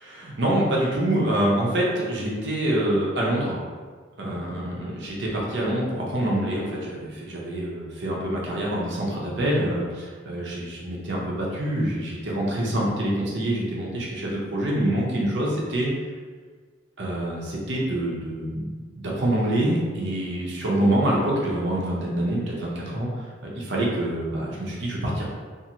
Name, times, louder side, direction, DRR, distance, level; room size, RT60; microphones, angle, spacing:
voice 1, 0.0-3.6 4.2-15.9 17.0-18.7 19.0-23.1 23.5-25.2, right 1 dB, 65° right, -4 dB, 0.7 m, -26 dB
2.6 x 2.5 x 2.9 m, 1.5 s
head